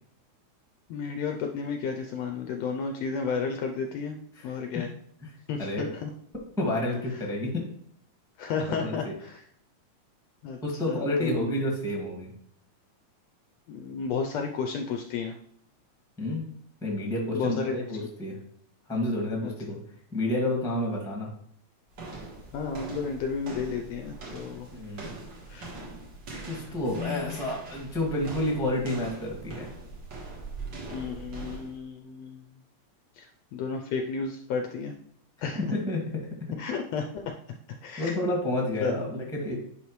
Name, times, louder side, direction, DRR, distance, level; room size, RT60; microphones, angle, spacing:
voice 1, 0.9-4.2 4.4-4.9 5.5-6.1 8.4-9.4 10.4-10.6 10.9-11.5 13.7-15.4 17.3-17.7 19.4-19.5 22.5-24.7 25.5-25.7 26.9-27.4 30.9-32.5 33.2-33.3 33.5-34.9 35.4-35.7 36.6-37.2 37.8-38.1 38.8-38.9, left 5 dB, 75° left, 4 dB, 1.6 m, -32 dB
voice 2, 4.3-4.8 5.2-5.3 5.6-5.9 6.6-7.7 8.7-8.9 10.6-12.3 16.2-16.4 16.8-18.4 18.9-19.8 20.1-21.3 24.7-25.1 26.5-29.7 35.5-36.3 38.0-39.5, left 1 dB, ahead, 0 dB, 1.1 m, -30 dB
sound 1, 21.9-31.8, right 3 dB, 45° right, 1.8 m, -42 dB
10.5 x 4.2 x 3.1 m, 0.69 s
omnidirectional pair, 3.4 m